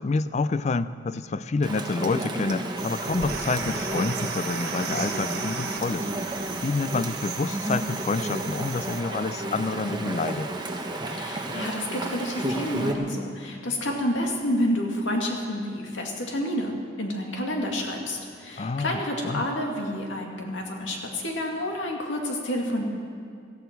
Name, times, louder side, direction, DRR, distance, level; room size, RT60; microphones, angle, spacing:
voice 1, 0.0-6.1 6.6-10.5 18.6-19.5, left 3 dB, 35° left, 14 dB, 0.4 m, -28 dB
Chatter / Stream, 1.6-12.9, right 1 dB, 25° right, 1.1 m, -32 dB
sound 1, 2.8-9.0, right 6 dB, 55° right, 1.3 m, -36 dB
voice 2, 11.1-16.7 17.0-22.8, left 1 dB, 85° left, 0 dB, 2.3 m, -29 dB
18.0 x 14.0 x 4.6 m, 2.3 s
head